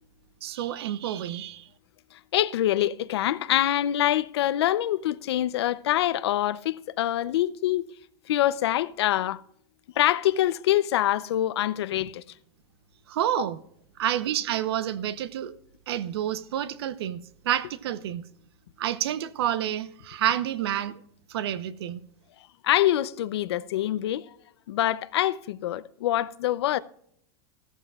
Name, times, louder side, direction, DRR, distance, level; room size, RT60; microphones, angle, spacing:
voice 1, 0.4-1.7 13.1-13.6 14.0-15.6 15.9-18.2 18.8-21.0 21.3-22.0, right 11 dB, 75° right, 0.9 m, -29 dB
voice 2, 2.1-7.9 8.3-9.4 10.0-12.2 13.4-13.5 22.6-24.3 24.7-26.8, left 13 dB, 80° left, 0.7 m, -25 dB
14.5 x 13.5 x 2.4 m
supercardioid pair, 170°, 13 cm